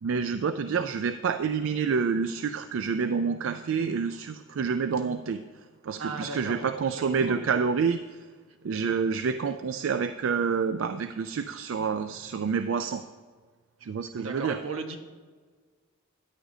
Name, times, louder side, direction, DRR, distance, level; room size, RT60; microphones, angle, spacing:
voice 1, 0.0-8.0 8.6-13.0 13.8-14.6, right 5 dB, 65° right, 10 dB, 0.4 m, -28 dB
voice 2, 6.0-7.6 8.5-8.6 14.2-15.0, right 3 dB, 85° right, 4 dB, 1.2 m, -37 dB
13.5 x 10.0 x 2.7 m, 1.5 s
head